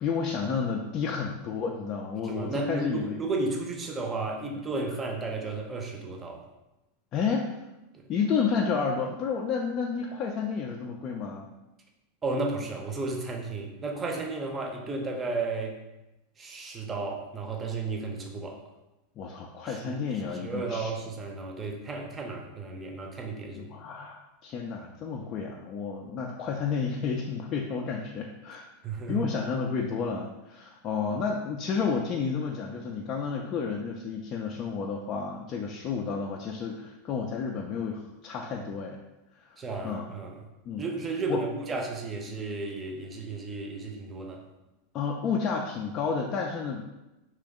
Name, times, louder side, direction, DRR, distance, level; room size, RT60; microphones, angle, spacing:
voice 1, 0.0-3.2 7.1-7.6 8.1-11.5 19.2-20.9 23.5-28.6 29.1-39.0 39.3-39.6 39.8-40.1 40.7-40.8 41.3-41.4 44.9-46.8, left 5 dB, 35° left, 0 dB, 0.3 m, -31 dB
voice 2, 2.2-6.4 7.9-8.0 12.2-15.8 16.4-18.6 19.7-20.0 20.4-23.7 28.8-29.3 39.6-40.4 40.8-44.4, right 3 dB, 20° right, 2 dB, 0.6 m, -33 dB
3.3 x 3.0 x 3.4 m, 0.98 s
figure-of-eight pair, 85°, 0 cm